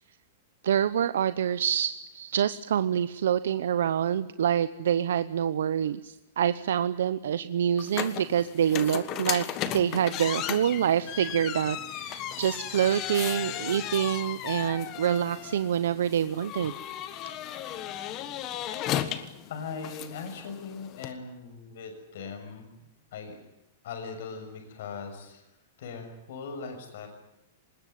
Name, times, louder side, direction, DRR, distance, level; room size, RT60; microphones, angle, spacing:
voice 1, 0.6-9.4 9.7-16.7, right 9 dB, 80° right, 13 dB, 0.9 m, -26 dB
sound 1, 7.8-21.1, left 11 dB, 25° left, 1.4 m, -35 dB
voice 2, 19.5-22.7 23.1-23.4 23.8-25.4 25.8-27.1, left 5 dB, 55° left, 5 dB, 6.7 m, -39 dB
25.0 x 20.5 x 9.4 m, 0.86 s
supercardioid pair, 175°, 0 cm